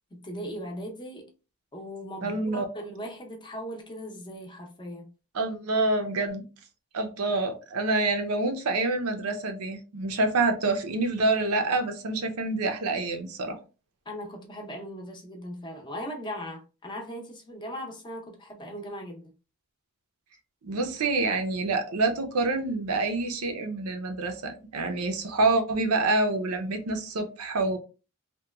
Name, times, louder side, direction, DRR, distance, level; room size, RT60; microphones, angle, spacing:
voice 1, 0.1-1.3 1.7-5.1 14.1-19.3, equal, 20° left, 0.6 m, -38 dB
voice 2, 2.2-2.6 5.3-6.5 6.9-13.6 20.6-27.8, right 2 dB, 85° right, 0.6 m, -27 dB
2.9 x 2.2 x 2.2 m
head